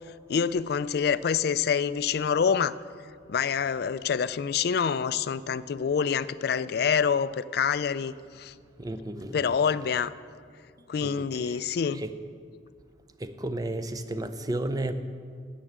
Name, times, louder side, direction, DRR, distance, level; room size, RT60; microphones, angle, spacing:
voice 1, 0.3-2.7 3.3-8.5 9.3-10.1 10.9-12.0, left 7 dB, 60° left, 16 dB, 0.4 m, -26 dB
voice 2, 8.8-9.6 11.0-11.6 11.9-12.2 13.2-14.9, right 1 dB, 20° right, 10 dB, 0.6 m, -33 dB
10.0 x 9.0 x 7.4 m, 2.2 s
head